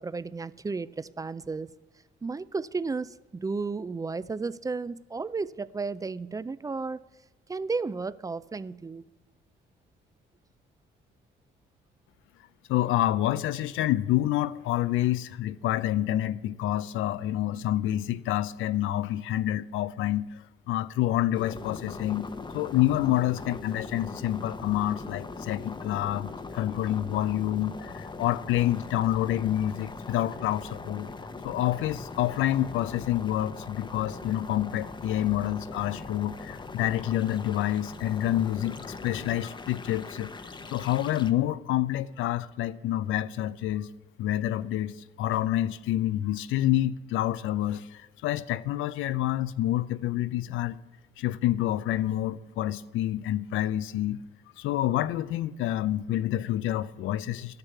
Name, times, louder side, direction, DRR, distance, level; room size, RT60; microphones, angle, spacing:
voice 1, 0.0-1.7 2.2-7.0 7.5-9.1, right 4 dB, 15° right, 0.4 m, -33 dB
voice 2, 12.7-20.3 20.7-22.3 22.5-31.1 31.4-40.3 40.7-43.9 44.2-50.8 51.2-54.2 54.6-57.6, left 13 dB, 85° left, 0.5 m, -28 dB
sound 1, 21.3-41.3, left 3 dB, 25° left, 0.8 m, -41 dB
12.5 x 6.8 x 8.2 m
cardioid pair, 90°, 20 cm